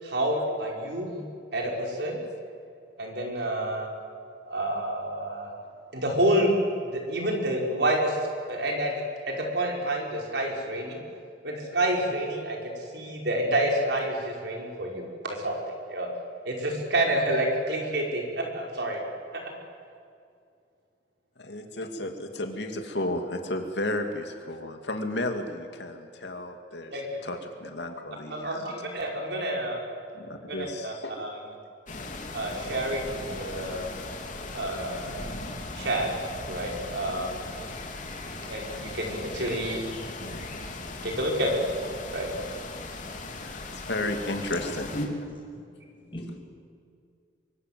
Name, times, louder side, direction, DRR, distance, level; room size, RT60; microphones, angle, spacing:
voice 1, 0.0-1.2 1.5-2.2 3.0-3.9 4.5-5.5 5.9-6.5 6.8-8.2 8.5-11.0 11.4-15.6 15.9-16.1 16.5-19.0 19.3-19.4 26.9-27.2 28.3-29.8 30.5-30.6 30.8-30.9 31.2-31.4 32.3-33.9 34.5-35.3 35.7-36.1 36.5-37.4 38.4-39.8 41.0-41.6 42.1-42.3, right 1 dB, 70° right, 0 dB, 5.6 m, -28 dB
voice 2, 21.4-26.9 27.2-28.6 30.1-31.2 43.4-44.9, left 1 dB, 75° left, 4 dB, 2.6 m, -33 dB
sound 1, 31.9-45.1, left 2 dB, 45° left, 3.1 m, -38 dB
voice 3, 44.6-45.1 45.5-45.6 46.1-46.4, equal, 30° left, 0 dB, 6.2 m, -35 dB
24.5 x 24.0 x 7.7 m, 2.3 s
head